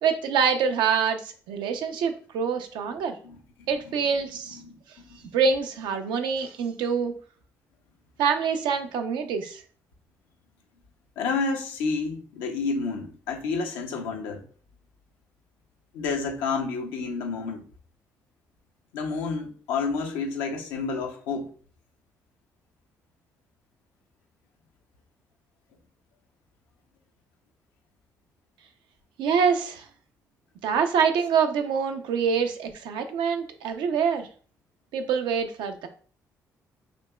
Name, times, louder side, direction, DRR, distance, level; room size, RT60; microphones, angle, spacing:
voice 1, 0.0-3.2 3.7-4.6 5.3-7.1 8.2-9.6 29.2-29.8 30.6-34.3 34.9-35.9, right 6 dB, 75° right, 0.5 m, -25 dB
voice 2, 3.2-4.0 4.5-5.2 11.2-14.4 15.9-17.6 18.9-21.5, left 4 dB, 85° left, 0.6 m, -30 dB
5.1 x 2.9 x 2.2 m
hypercardioid pair, 55°, 8 cm